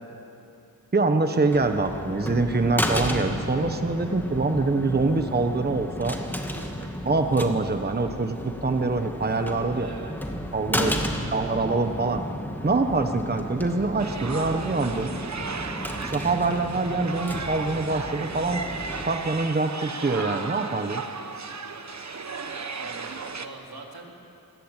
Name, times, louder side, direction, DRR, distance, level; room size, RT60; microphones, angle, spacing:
voice 1, 0.9-6.2 7.0-9.9 10.5-10.9 11.3-12.2 12.6-15.1 16.0-18.6 19.0-21.0, right 3 dB, 25° right, 6 dB, 1.2 m, -25 dB
sound 1, 1.5-19.1, equal, 5° left, 2.0 m, -33 dB
voice 2, 6.5-6.9 9.7-10.2 10.8-11.2 22.7-24.1, right 4 dB, 85° right, 0 dB, 3.8 m, -43 dB
sound 2, 14.0-23.5, right 4 dB, 50° right, 1.3 m, -35 dB
27.5 x 20.5 x 9.0 m, 2.7 s
wide cardioid pair, 120°, 36 cm